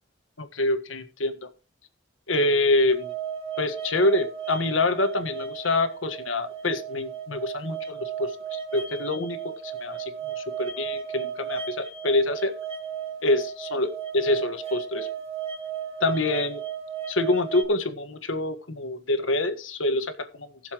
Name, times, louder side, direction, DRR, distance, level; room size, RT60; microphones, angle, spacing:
voice 1, 0.4-1.5 2.3-3.1 3.6-9.4 9.6-10.1 10.4-12.5 13.2-13.9 14.1-15.1 16.0-16.6 17.1-20.5, left 2 dB, 90° left, 9 dB, 1.6 m, -26 dB
singing bowl, 2.9-17.6, right 8 dB, 30° right, 2.0 m, -35 dB
19.5 x 7.1 x 3.1 m, 0.37 s
head